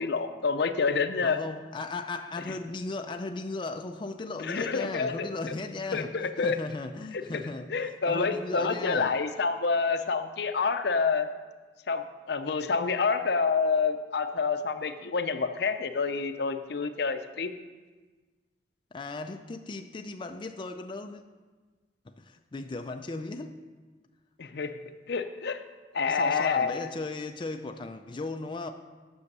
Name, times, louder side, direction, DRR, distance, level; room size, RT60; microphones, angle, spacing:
voice 1, 0.0-1.4 4.4-5.3 5.9-6.6 7.7-11.3 11.9-17.5 24.4-24.7 25.1-25.6 25.9-26.8, left 5 dB, 65° left, 9 dB, 0.6 m, -28 dB
voice 2, 1.2-9.2 18.9-21.2 22.0-23.6 26.1-28.7, left 3 dB, 30° left, 5 dB, 0.4 m, -36 dB
9.6 x 6.4 x 6.6 m, 1.4 s
head